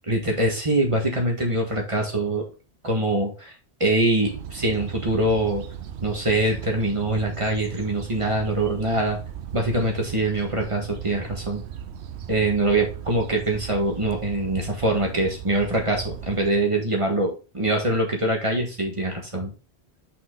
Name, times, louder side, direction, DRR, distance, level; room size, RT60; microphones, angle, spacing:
voice 1, 0.1-2.5 2.8-3.5 3.8-5.7 6.0-9.2 9.5-11.6 12.3-19.5, right 1 dB, 30° right, 1 dB, 1.8 m, -24 dB
sound 1, 4.2-16.5, right 8 dB, 90° right, 0.9 m, -37 dB
5.9 x 5.3 x 3.8 m, 0.33 s
omnidirectional pair, 1.1 m